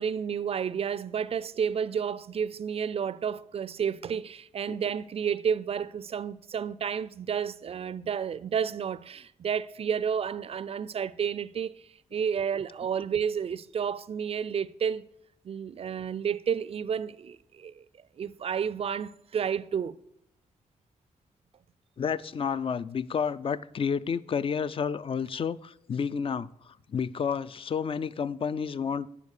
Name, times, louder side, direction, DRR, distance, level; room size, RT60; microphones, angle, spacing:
voice 1, 0.0-11.8 12.1-15.0 15.4-17.9 18.2-20.0, right 7 dB, 45° right, 0.4 m, -31 dB
voice 2, 22.0-29.1, left 6 dB, 40° left, 0.4 m, -30 dB
9.8 x 4.0 x 6.6 m
cardioid pair, 80°, 13 cm